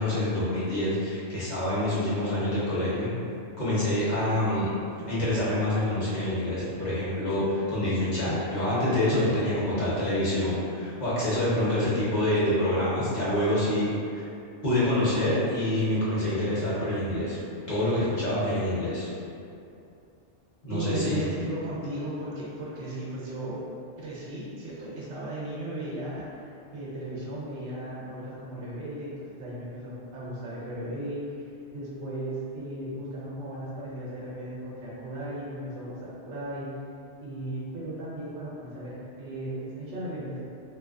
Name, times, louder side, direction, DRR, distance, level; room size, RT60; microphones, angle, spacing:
voice 1, 0.0-3.1 3.6-4.7 5.1-14.2 14.6-17.4 17.7-19.1 20.6-21.3, left 1 dB, 45° left, -10 dB, 0.7 m, -26 dB
voice 2, 20.7-23.6 24.0-31.2 31.7-36.7 37.2-40.4, right 1 dB, 75° right, -8 dB, 1.0 m, -36 dB
2.4 x 2.3 x 2.3 m, 2.6 s
omnidirectional pair, 1.2 m